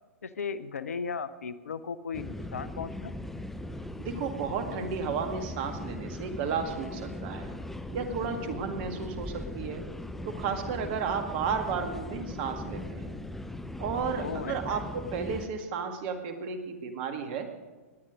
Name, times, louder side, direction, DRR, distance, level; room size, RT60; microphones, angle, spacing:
voice 1, 0.2-3.1 14.2-14.8, left 6 dB, 70° left, 15 dB, 0.8 m, -36 dB
sound 1, 2.1-15.5, left 1 dB, 5° left, 0.6 m, -39 dB
voice 2, 4.0-7.5 7.9-9.8 10.2-13.1 13.8-17.5, right 6 dB, 45° right, 6 dB, 2.0 m, -33 dB
19.0 x 10.0 x 5.2 m, 1.3 s
figure-of-eight pair, 110°, 8 cm